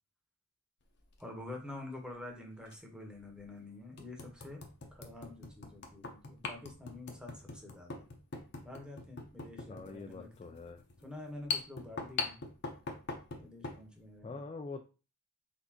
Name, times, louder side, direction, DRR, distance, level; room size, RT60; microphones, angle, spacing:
sound 1, 1.0-1.2 2.7-2.8 3.3-3.4 4.0-13.8, left 4 dB, 55° left, 0.8 m, -42 dB
voice 1, 1.2-4.6 4.9-8.1 8.6-10.6 11.0-12.4 13.4-14.5, left 2 dB, 5° right, 0 dB, 1.0 m, -47 dB
voice 2, 9.7-10.8 14.2-14.8, left 3 dB, 30° left, 4 dB, 0.3 m, -44 dB
4.2 x 3.8 x 2.8 m, 0.33 s
head